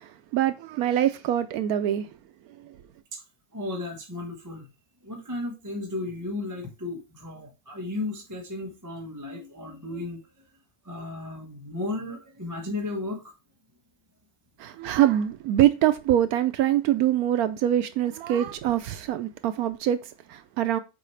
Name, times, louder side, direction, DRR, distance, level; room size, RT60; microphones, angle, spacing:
voice 1, 0.0-2.1 2.6-2.8 14.6-20.8, right 11 dB, 80° right, 1.1 m, -24 dB
voice 2, 3.5-4.7 5.0-10.5 10.8-13.3, left 2 dB, 15° right, 1.1 m, -34 dB
7.6 x 4.9 x 3.2 m
omnidirectional pair, 1.6 m